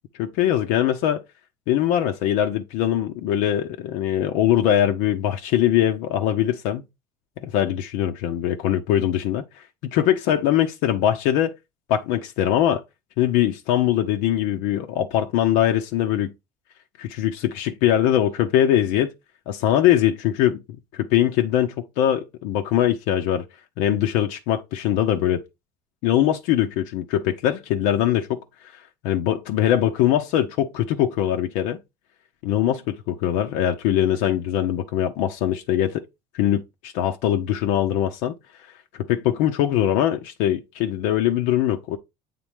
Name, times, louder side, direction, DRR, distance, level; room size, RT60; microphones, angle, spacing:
voice 1, 0.2-1.2 1.7-6.8 7.4-9.5 9.8-11.5 11.9-12.8 13.2-16.3 17.0-19.1 19.5-20.6 21.0-23.4 23.8-25.4 26.0-28.4 29.0-31.8 32.4-36.0 36.3-38.3 39.1-42.0, left 11 dB, 90° left, 0.8 m, -22 dB
7.7 x 3.7 x 3.5 m
cardioid pair, 120°, 13 cm